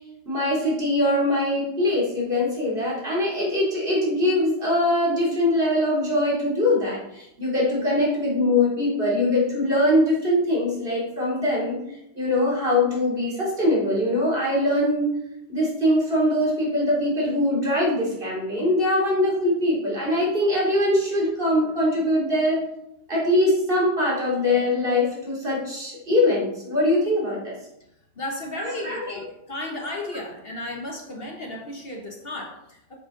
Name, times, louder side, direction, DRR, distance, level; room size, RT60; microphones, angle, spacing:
voice 1, 0.3-11.8 12.1-15.1 15.5-22.6 23.1-27.5 28.6-29.2, left 1 dB, 45° right, -5 dB, 3.2 m, -22 dB
voice 2, 28.2-33.0, left 1 dB, 50° left, 0 dB, 1.4 m, -34 dB
7.9 x 7.5 x 3.8 m, 0.83 s
omnidirectional pair, 1.3 m